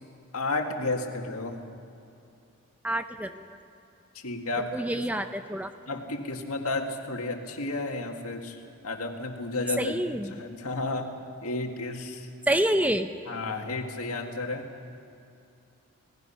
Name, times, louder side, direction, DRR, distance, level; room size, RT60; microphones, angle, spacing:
voice 1, 0.3-1.6 4.1-5.0 5.9-8.6 8.8-9.9 10.3-11.1 11.4-12.3 13.3-14.7, left 2 dB, 85° left, 3 dB, 2.1 m, -32 dB
voice 2, 2.8-3.4 4.7-5.7 9.8-10.3 12.5-13.1, right 1 dB, 5° right, 8 dB, 0.6 m, -27 dB
28.0 x 18.5 x 5.8 m, 2.6 s
head